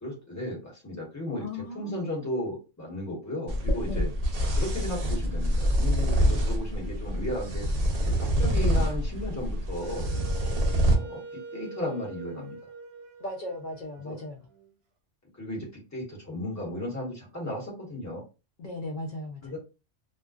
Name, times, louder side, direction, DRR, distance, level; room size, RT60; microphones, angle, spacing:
voice 1, 0.0-4.1 4.5-7.7 8.2-10.1 10.9-12.6 14.0-14.2 15.3-18.2 19.4-19.6, left 1 dB, 15° left, -4 dB, 1.1 m, -35 dB
voice 2, 1.4-2.3 3.9-4.1 10.4-10.6 13.2-14.4 18.6-19.6, left 2 dB, 55° left, 1 dB, 0.6 m, -37 dB
sound 1, 3.5-11.0, equal, 50° right, 0.5 m, -26 dB
Wind instrument woodwind instrument, 9.8-14.7, right 3 dB, 65° right, 0.9 m, -44 dB
2.4 x 2.2 x 2.3 m, 0.30 s
omnidirectional pair, 1.2 m